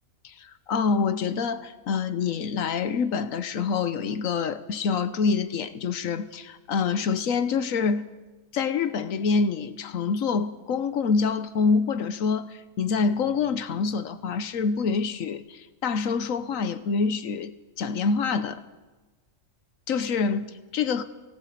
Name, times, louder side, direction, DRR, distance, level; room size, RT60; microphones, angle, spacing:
voice 1, 0.2-8.1 8.5-18.6 19.9-21.0, left 5 dB, 90° left, 11 dB, 1.3 m, -26 dB
22.5 x 19.0 x 8.5 m, 1.2 s
omnidirectional pair, 1.4 m